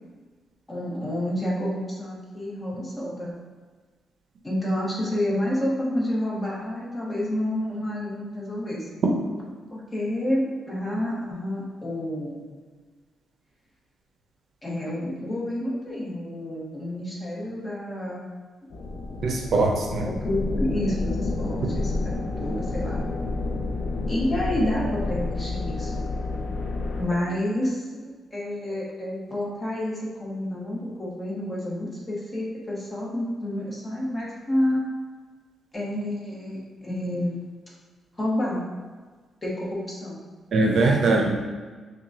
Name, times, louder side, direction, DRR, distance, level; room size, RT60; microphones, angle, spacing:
voice 1, 0.7-3.3 4.4-8.9 9.7-12.5 14.6-18.2 19.1-19.6 20.0-22.1 22.4-23.0 24.1-26.0 27.0-34.8 35.7-37.4 38.2-38.6 39.4-40.2, left 1 dB, 20° left, -5 dB, 1.2 m, -29 dB
sound 1, 18.7-27.1, left 2 dB, 60° left, 0.5 m, -29 dB
voice 2, 19.2-20.1 40.5-41.3, right 3 dB, 60° right, 1 dB, 0.6 m, -21 dB
5.8 x 2.3 x 2.7 m, 1.4 s
cardioid pair, 95°, 0 cm